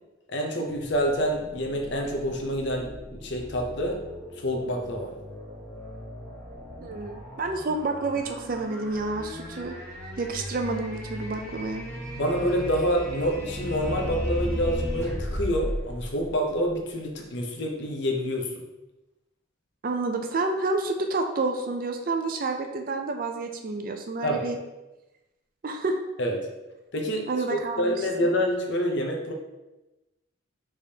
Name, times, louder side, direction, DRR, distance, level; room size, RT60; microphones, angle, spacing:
voice 1, 0.3-4.0 4.4-5.1 12.2-18.5 24.2-24.5 26.2-26.4 26.9-29.3, equal, 55° left, 2 dB, 0.7 m, -27 dB
sound 1, 0.7-16.9, equal, 10° left, 1.1 m, -36 dB
voice 2, 6.8-9.7 10.2-11.8 19.8-24.6 25.6-26.0 27.3-27.9 28.2-28.3, right 3 dB, 40° right, 5 dB, 0.4 m, -29 dB
5.1 x 3.4 x 2.8 m, 1.0 s
head